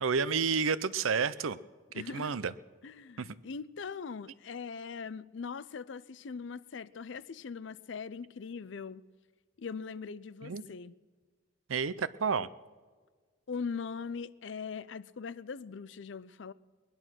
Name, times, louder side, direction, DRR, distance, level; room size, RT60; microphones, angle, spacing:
voice 1, 0.0-1.6 2.1-2.5 3.2-3.3 10.4-10.6 11.7-12.5, right 5 dB, 85° right, 0.6 m, -30 dB
voice 2, 1.9-2.4 2.8-9.0 9.6-10.9 13.5-16.5, left 5 dB, 65° left, 0.5 m, -41 dB
20.0 x 11.0 x 6.1 m
head